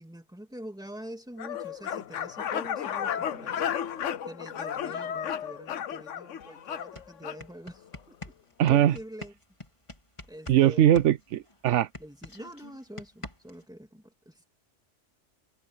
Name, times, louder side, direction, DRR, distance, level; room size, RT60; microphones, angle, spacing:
voice 1, 0.0-3.7 4.3-8.4 8.7-9.3 10.3-10.8 12.0-14.4, equal, 5° right, 2.2 m, -45 dB
sound 1, 1.4-7.4, left 9 dB, 85° left, 1.2 m, -33 dB
sound 2, 6.4-6.5 6.8-10.6 10.9-13.6, left 2 dB, 25° left, 3.1 m, -44 dB
voice 2, 8.6-8.9 10.5-11.9, right 11 dB, 80° right, 0.9 m, -21 dB
omnidirectional pair, 1.2 m